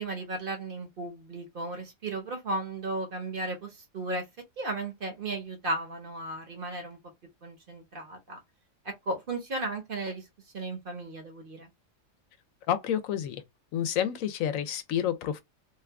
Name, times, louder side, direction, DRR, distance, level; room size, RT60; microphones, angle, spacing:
voice 1, 0.0-4.3 4.6-7.0 7.4-8.4 8.8-10.3 10.5-11.7, right 2 dB, 45° right, 0.9 m, -35 dB
voice 2, 12.7-13.4 13.7-15.4, left 9 dB, 80° left, 1.0 m, -29 dB
2.8 x 2.4 x 3.3 m
omnidirectional pair, 1.4 m